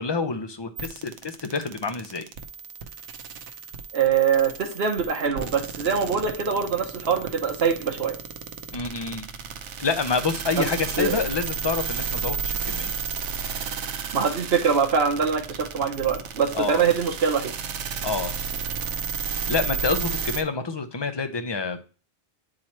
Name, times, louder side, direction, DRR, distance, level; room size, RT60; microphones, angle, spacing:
voice 1, 0.0-2.3 8.7-9.3 9.8-12.9 16.5-16.9 18.0-18.3 19.5-21.8, left 4 dB, 35° left, 9 dB, 0.5 m, -27 dB
sound 1, 0.8-20.4, right 6 dB, 90° right, 1.0 m, -33 dB
voice 2, 3.9-8.1 10.6-10.7 11.0-11.1 14.1-17.5, right 6 dB, 65° right, 5 dB, 1.2 m, -23 dB
8.6 x 3.0 x 4.3 m, 0.36 s
omnidirectional pair, 1.2 m